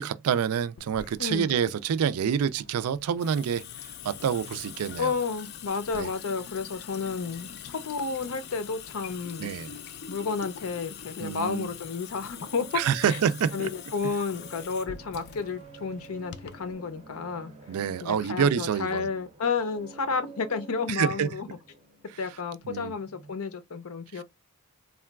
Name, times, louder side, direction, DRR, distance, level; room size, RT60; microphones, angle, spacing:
voice 1, 0.0-3.6 4.0-5.1 5.9-6.1 9.4-9.8 11.2-11.7 12.7-13.7 17.7-19.1 20.9-21.3 22.7-22.9 24.1-24.2, right 7 dB, 90° right, 0.3 m, -27 dB
Water tap faucet / Sink (filling or washing) / Drip, 0.8-16.7, left 8 dB, 45° left, 0.3 m, -44 dB
voice 2, 1.2-1.5 5.0-9.5 10.1-13.2 13.5-17.5 18.0-21.5 22.2-24.2, left 5 dB, 85° left, 0.6 m, -31 dB
sound 1, 12.2-23.3, right 4 dB, 30° right, 0.5 m, -50 dB
3.7 x 2.3 x 2.2 m
head